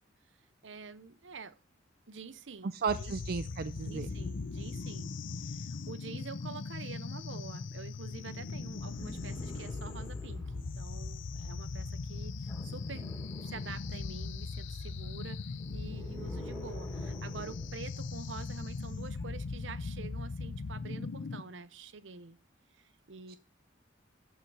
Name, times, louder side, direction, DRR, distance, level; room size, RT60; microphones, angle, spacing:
voice 1, 0.6-1.5 2.1-3.5 3.8-5.1 5.4-13.1 13.4-15.4 15.7-22.4 22.7-23.4, right 4 dB, 70° right, 0.8 m, -47 dB
voice 2, 2.6-4.1 23.3-23.4, right 5 dB, 55° right, 0.4 m, -34 dB
sound 1, 2.9-21.4, left 4 dB, 75° left, 0.6 m, -39 dB
sound 2, 8.8-10.8 12.5-14.2 15.5-17.8 19.1-19.2, equal, 20° left, 3.7 m, -47 dB
13.5 x 5.6 x 4.8 m
head